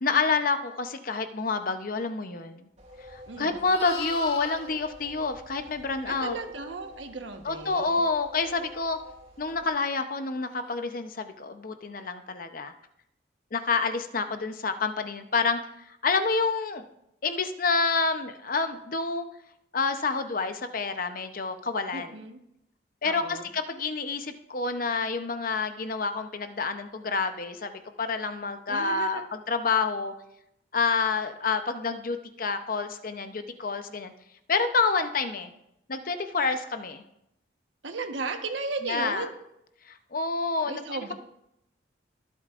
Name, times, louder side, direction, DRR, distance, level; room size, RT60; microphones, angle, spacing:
voice 1, 0.0-2.7 3.1-6.4 7.4-9.0 9.4-12.7 13.5-16.9 17.2-19.3 19.7-22.1 23.0-30.1 30.7-34.1 34.5-35.5 35.9-37.0 38.8-39.3 39.8-41.1, left 4 dB, 45° left, 8 dB, 0.8 m, -28 dB
sound 1, 2.8-9.6, equal, 35° right, 2.6 m, -50 dB
Livestock farm animals working animals, 3.0-6.3 10.6-10.8, left 3 dB, 30° left, 1.2 m, -41 dB
voice 2, 3.3-3.6 6.1-8.0 21.9-22.4 23.0-23.5 28.7-29.2 37.8-39.3 40.6-41.1, right 3 dB, 75° right, 5 dB, 1.3 m, -35 dB
23.0 x 8.3 x 2.5 m, 0.81 s
head